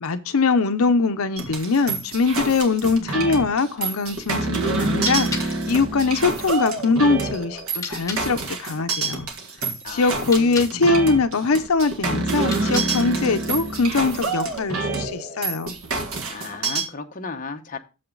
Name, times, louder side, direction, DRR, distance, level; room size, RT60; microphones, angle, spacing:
voice 1, 0.0-9.3 9.9-15.8, left 4 dB, 75° left, 0.6 m, -22 dB
sound 1, 1.4-16.8, right 3 dB, 80° right, 1.7 m, -27 dB
sound 2, 4.9-8.3 10.1-10.8 12.3-13.1, left 4 dB, 15° left, 1.7 m, -36 dB
voice 2, 9.8-10.6 16.3-17.8, left 4 dB, 40° left, 0.9 m, -35 dB
7.6 x 7.1 x 3.8 m
head